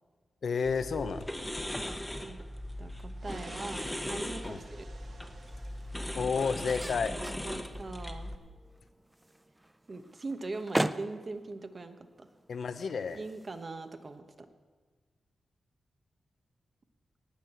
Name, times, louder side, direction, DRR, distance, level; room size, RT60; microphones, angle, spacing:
voice 1, 0.4-1.3 4.5-4.6 6.1-7.1 12.5-13.2, left 5 dB, 70° left, 10 dB, 0.8 m, -31 dB
sound 1, 0.6-8.4, left 1 dB, 5° left, 1.0 m, -39 dB
voice 2, 2.8-4.9 7.4-8.3 9.9-12.3 13.1-14.5, right 3 dB, 40° right, 8 dB, 1.1 m, -41 dB
sound 2, 3.2-7.1, right 3 dB, 60° right, 1.4 m, -54 dB
sound 3, 3.8-14.2, right 1 dB, 10° right, 0.5 m, -41 dB
18.5 x 6.2 x 8.0 m, 1.5 s
wide cardioid pair, 95°, 0 cm